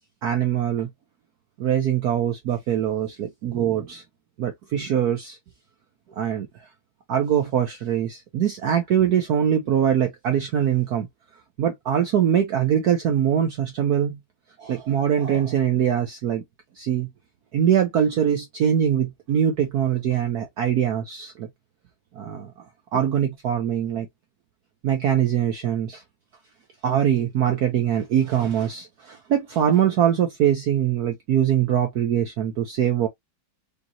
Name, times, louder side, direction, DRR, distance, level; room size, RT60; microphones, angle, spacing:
voice 1, 0.2-0.9 1.6-4.0 4.4-5.4 6.2-6.5 7.1-11.1 11.6-14.2 14.6-16.4 16.8-17.1 17.5-21.5 22.2-22.5 22.9-24.1 24.8-26.0 26.8-33.1, right 9 dB, 60° right, 1.1 m, -22 dB
5.1 x 2.8 x 2.8 m
omnidirectional pair, 2.2 m